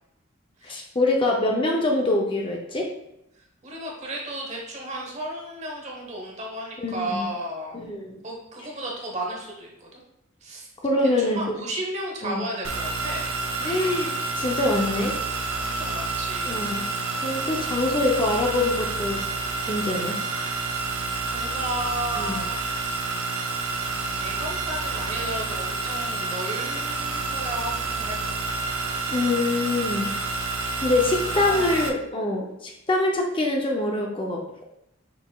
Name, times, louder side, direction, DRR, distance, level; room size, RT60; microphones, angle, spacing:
voice 1, 0.6-2.9 6.8-7.2 7.7-8.2 10.8-11.5 12.2-12.4 13.6-15.2 16.5-16.8 17.2-19.2 19.7-20.2 22.2-22.4 29.1-30.4 30.8-34.6, left 2 dB, 25° left, 0 dB, 0.5 m, -25 dB
voice 2, 3.4-7.9 8.2-10.0 10.4-10.7 11.2-13.2 15.6-16.6 21.3-23.2 23.7-28.9 31.2-31.9, right 1 dB, 35° right, -1 dB, 1.0 m, -34 dB
sound 1, 12.6-31.9, right 3 dB, 80° right, 0.6 m, -29 dB
5.5 x 4.2 x 2.3 m, 0.82 s
head